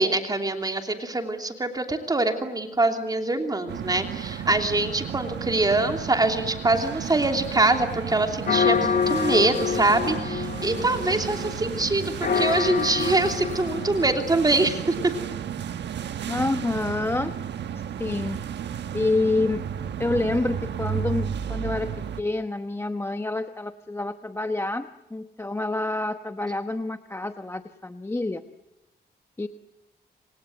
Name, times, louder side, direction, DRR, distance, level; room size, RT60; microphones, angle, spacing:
voice 1, 0.0-15.1, right 2 dB, 20° right, 4 dB, 3.0 m, -24 dB
sound 1, 3.7-22.2, right 8 dB, 80° right, 1.3 m, -33 dB
sound 2, 8.5-14.6, left 6 dB, 55° left, 2.2 m, -27 dB
voice 2, 16.3-17.3 18.0-18.4 18.9-19.6 20.0-21.9 22.2-28.4 29.4-29.5, left 2 dB, 15° left, 8 dB, 1.0 m, -27 dB
28.0 x 26.0 x 7.9 m, 0.97 s
cardioid pair, 120°, 18 cm